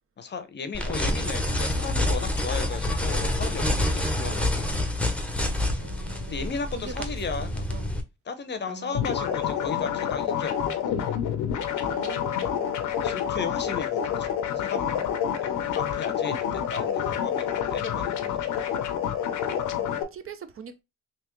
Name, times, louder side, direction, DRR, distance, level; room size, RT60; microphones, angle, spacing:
voice 1, 0.2-4.8 6.3-7.6 8.3-10.6 13.0-18.7, left 5 dB, 35° left, 0.7 m, -35 dB
sound 1, 0.7-8.0, left 1 dB, 5° left, 0.8 m, -27 dB
voice 2, 5.8-7.1 7.7-7.9 8.7-9.1 11.8-12.9 19.9-20.8, right 6 dB, 45° right, 0.7 m, -42 dB
sound 2, 8.9-20.0, left 9 dB, 85° left, 0.7 m, -28 dB
3.5 x 2.9 x 3.0 m
cardioid pair, 90°, 30 cm